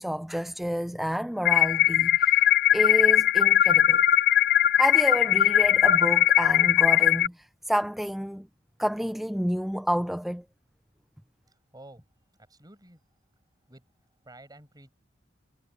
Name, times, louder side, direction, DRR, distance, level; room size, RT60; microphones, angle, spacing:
voice 1, 0.0-4.0 4.8-8.5 8.8-10.4, equal, ahead, 0.3 m, -29 dB
sound 1, 1.4-7.3, left 11 dB, 55° left, 0.6 m, -20 dB
voice 2, 11.5-12.1 12.5-13.0 13.7-13.8 14.2-14.9, right 1 dB, 20° right, 6.4 m, -50 dB
head